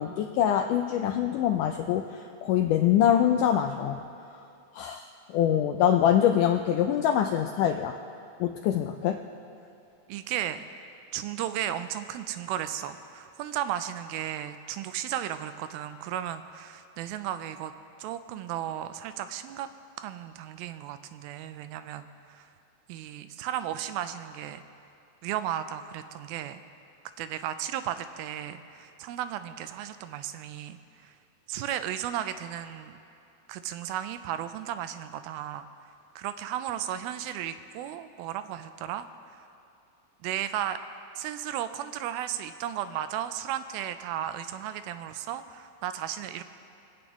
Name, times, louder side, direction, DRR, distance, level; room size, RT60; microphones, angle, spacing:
voice 1, 0.0-4.0 4.7-7.9 8.4-9.2, left 10 dB, 85° left, 5 dB, 1.8 m, -24 dB
voice 2, 10.1-10.7 11.1-17.7 18.0-19.7 20.0-22.5 22.9-24.6 25.2-26.6 27.2-31.1 31.5-33.0 33.5-35.7 36.2-39.4 40.2-40.8 41.2-46.4, right 11 dB, 90° right, 11 dB, 2.4 m, -34 dB
25.5 x 8.8 x 3.0 m, 2.6 s
omnidirectional pair, 4.2 m